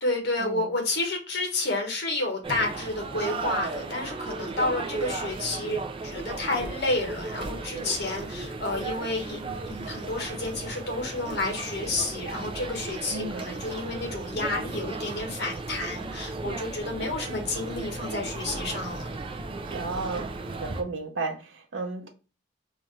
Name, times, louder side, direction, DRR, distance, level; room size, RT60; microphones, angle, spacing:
voice 1, 0.0-19.1, left 2 dB, 60° left, 1.2 m, -30 dB
sound 1, 2.4-20.8, right 3 dB, 30° right, 0.4 m, -35 dB
voice 2, 13.1-13.5 19.7-22.1, right 3 dB, 85° right, 0.8 m, -34 dB
4.0 x 2.4 x 3.2 m
head